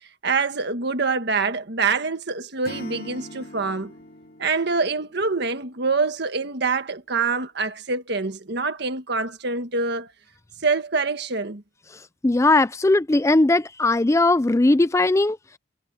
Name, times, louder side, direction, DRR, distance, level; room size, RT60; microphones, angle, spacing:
voice 1, 0.2-3.9 4.4-10.1 10.6-11.6, right 4 dB, 60° right, 1.6 m, -25 dB
Acoustic guitar / Strum, 2.6-5.7, left 1 dB, 50° left, 3.8 m, -42 dB
voice 2, 12.2-15.6, left 2 dB, 15° left, 0.4 m, -19 dB
head